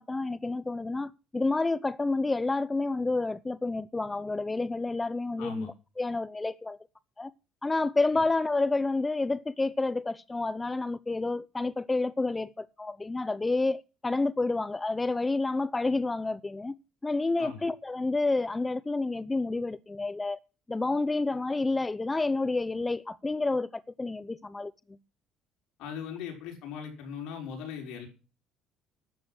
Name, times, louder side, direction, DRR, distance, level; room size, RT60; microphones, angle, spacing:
voice 1, 0.0-6.8 7.2-7.3 7.6-16.7 17.0-20.4 20.7-24.7, left 3 dB, 15° left, 0.6 m, -29 dB
voice 2, 5.4-5.7 17.4-17.6 25.8-28.1, left 7 dB, 75° left, 5.9 m, -39 dB
12.5 x 8.2 x 7.8 m
cardioid pair, 95°, 0 cm